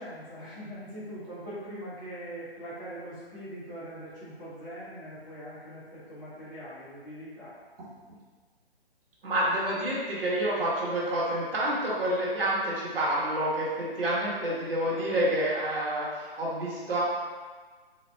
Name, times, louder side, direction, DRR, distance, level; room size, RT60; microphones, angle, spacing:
voice 1, 0.0-7.6 14.8-15.1, equal, 20° left, -11 dB, 1.3 m, -42 dB
voice 2, 9.2-17.0, right 1 dB, 65° right, -6 dB, 1.3 m, -28 dB
4.1 x 2.2 x 3.3 m, 1.4 s
figure-of-eight pair, 145°, 31 cm